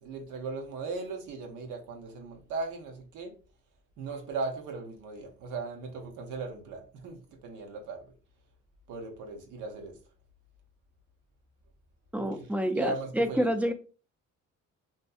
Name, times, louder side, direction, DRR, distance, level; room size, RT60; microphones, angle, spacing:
voice 1, 0.0-3.3 4.0-8.0 8.9-9.9 12.1-12.5 12.7-13.6, right 3 dB, 90° right, 0.7 m, -38 dB
voice 2, 12.1-13.7, equal, 5° right, 0.3 m, -28 dB
2.6 x 2.5 x 2.3 m
cardioid pair, 90°, 30 cm